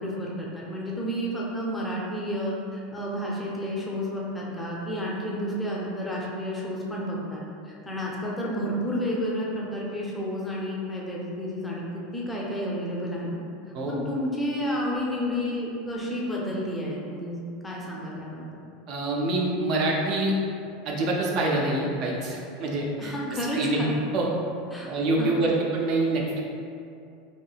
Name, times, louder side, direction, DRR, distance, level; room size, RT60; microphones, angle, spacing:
voice 1, 0.0-13.4 13.8-18.5 23.0-24.0 24.7-25.7, equal, 10° left, -4 dB, 0.5 m, -31 dB
voice 2, 18.9-20.3 20.8-23.1 23.5-23.8 24.1-24.3 24.9-26.4, right 2 dB, 50° right, -2 dB, 0.4 m, -26 dB
3.0 x 2.6 x 2.3 m, 2.5 s
supercardioid pair, 135°, 0 cm